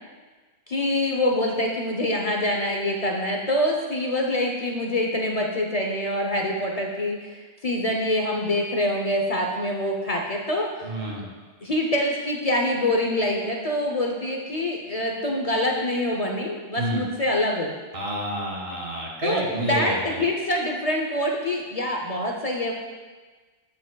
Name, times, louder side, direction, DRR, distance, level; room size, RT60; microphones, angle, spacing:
voice 1, 0.7-10.9 11.6-17.7 19.2-22.7, left 1 dB, 40° left, 0 dB, 0.7 m, -25 dB
voice 2, 10.8-11.3 16.8-17.0 17.9-20.2, right 1 dB, 65° right, -2 dB, 1.6 m, -29 dB
14.5 x 4.9 x 2.2 m, 1.4 s
omnidirectional pair, 1.0 m